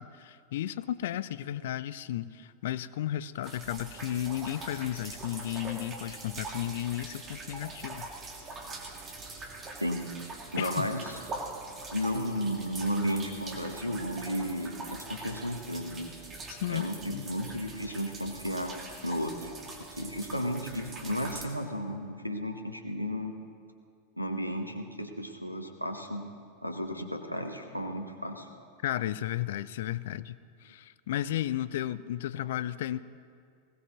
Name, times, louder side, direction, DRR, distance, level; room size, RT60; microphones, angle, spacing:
voice 1, 0.0-8.1 10.6-10.9 16.5-17.3 28.8-33.0, left 12 dB, 55° left, 16 dB, 0.4 m, -34 dB
sound 1, 3.4-21.4, right 3 dB, 25° right, 1.9 m, -43 dB
voice 2, 10.5-11.2 11.9-16.1 16.7-18.8 19.0-19.5 19.9-23.3 24.2-26.3 26.6-28.5, equal, 90° right, 6 dB, 1.1 m, -33 dB
20.5 x 17.0 x 3.0 m, 2.3 s
figure-of-eight pair, 90°, 0 cm